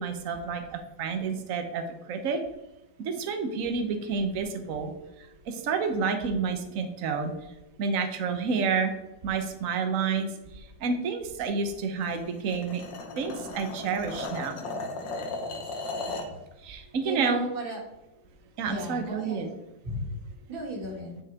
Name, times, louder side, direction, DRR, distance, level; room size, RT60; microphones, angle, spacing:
voice 1, 0.0-2.4 3.0-4.9 5.5-7.3 7.8-9.0 9.2-10.3 10.8-12.8 13.2-14.6 16.6-17.4 18.6-19.5, right 5 dB, 50° right, 6 dB, 1.2 m, -29 dB
sound 1, 12.0-16.4, left 2 dB, 70° left, 1.7 m, -36 dB
voice 2, 17.0-17.8 18.6-19.5 19.8-20.1 20.5-21.2, right 2 dB, 85° right, -2 dB, 2.9 m, -35 dB
9.6 x 5.8 x 3.5 m, 0.95 s
omnidirectional pair, 2.1 m